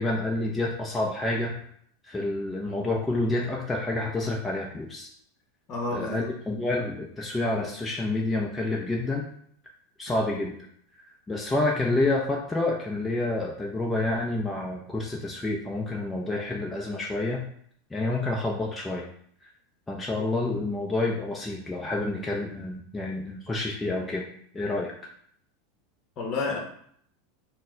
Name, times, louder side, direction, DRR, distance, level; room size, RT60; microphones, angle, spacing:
voice 1, 0.0-1.5 2.0-5.1 5.9-9.3 10.0-10.5 11.3-17.4 17.9-19.1 19.9-24.2 24.5-24.9, left 2 dB, 15° left, -2 dB, 0.6 m, -28 dB
voice 2, 5.7-6.3 10.1-10.2 26.2-26.6, left 3 dB, 40° left, 1 dB, 1.0 m, -30 dB
4.2 x 2.1 x 4.4 m, 0.64 s
hypercardioid pair, 115°, 0 cm